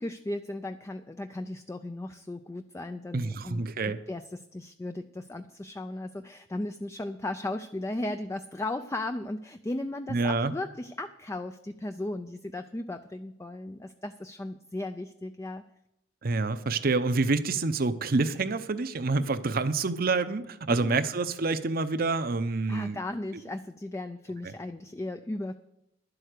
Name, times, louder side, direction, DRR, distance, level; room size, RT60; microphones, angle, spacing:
voice 1, 0.0-15.6 20.7-21.0 22.7-25.5, left 2 dB, 15° left, 9 dB, 0.4 m, -36 dB
voice 2, 3.1-4.0 10.1-10.5 16.2-23.0 24.4-24.5, right 3 dB, 50° right, 12 dB, 0.7 m, -27 dB
11.0 x 7.9 x 6.6 m, 0.83 s
head